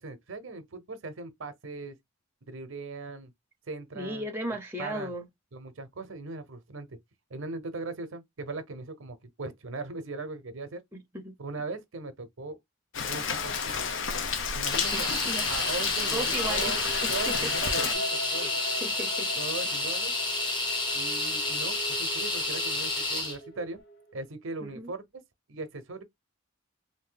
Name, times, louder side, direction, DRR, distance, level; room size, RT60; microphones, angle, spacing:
voice 1, 0.0-2.0 2.5-3.3 3.7-4.3 4.8-5.1 5.5-7.0 7.3-10.8 11.4-12.6 13.0-13.8 14.5-15.1 15.5-16.8 17.1-18.5 19.4-20.1 20.9-23.8 24.1-25.0 25.5-26.0, right 3 dB, 65° right, 0.7 m, -39 dB
voice 2, 3.9-5.3 10.9-11.4 14.9-15.5 16.1-17.3 18.4-19.3 24.6-24.9, right 1 dB, 10° right, 0.6 m, -36 dB
Rain, 12.9-17.9, left 6 dB, 60° left, 0.6 m, -31 dB
sound 1, 14.7-23.4, left 2 dB, 20° left, 0.9 m, -30 dB
sound 2, 16.5-24.3, equal, 45° left, 1.1 m, -40 dB
2.6 x 2.6 x 3.8 m
head